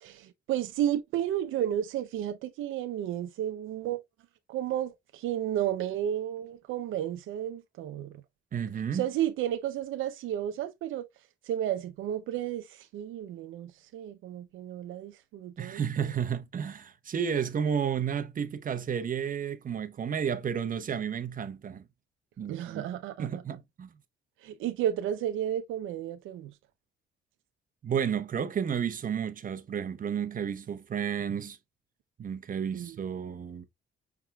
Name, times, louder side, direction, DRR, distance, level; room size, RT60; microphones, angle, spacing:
voice 1, 0.0-4.0 4.5-8.1 8.9-11.0 11.5-16.1 22.5-23.4 24.4-26.5 32.7-33.0, right 11 dB, 85° right, 0.6 m, -32 dB
voice 2, 8.5-9.1 15.6-21.8 22.4-22.8 23.2-24.0 27.8-31.6 32.2-33.6, right 7 dB, 45° right, 0.8 m, -32 dB
5.8 x 3.6 x 2.3 m
cardioid pair, 90°, 20 cm